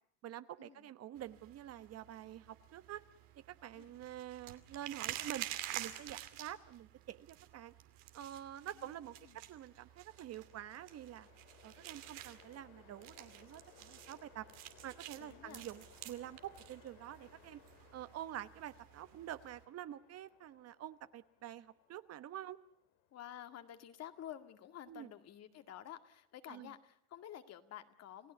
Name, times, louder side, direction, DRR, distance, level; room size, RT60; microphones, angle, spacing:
voice 1, 0.2-3.0 3.4-5.5 5.7-7.7 8.1-9.2 9.5-11.3 11.6-14.5 14.8-17.6 17.9-22.6 24.9-25.1 26.5-26.7, right 11 dB, 45° right, 13 dB, 1.1 m, -47 dB
sound 1, 1.2-19.6, right 14 dB, 85° right, 2.6 m, -50 dB
voice 2, 8.8-9.4 15.2-15.7 23.1-28.3, left 11 dB, 45° left, 8 dB, 2.1 m, -51 dB
Train, 9.3-26.5, left 11 dB, 75° left, 3.0 m, -66 dB
29.0 x 17.0 x 8.1 m, 0.74 s
cardioid pair, 125°, 36 cm